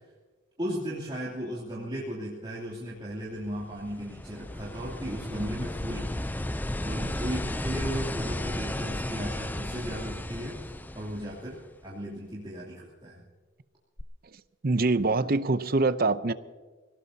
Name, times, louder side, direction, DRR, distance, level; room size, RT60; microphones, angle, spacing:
voice 1, 0.6-6.4 6.8-13.2, equal, 25° right, -6 dB, 2.8 m, -36 dB
sound 1, 3.4-11.8 14.0-14.1, left 1 dB, 10° left, 0.4 m, -34 dB
voice 2, 14.6-16.3, right 3 dB, 45° right, 13 dB, 0.6 m, -24 dB
25.5 x 17.5 x 2.8 m, 1.4 s
head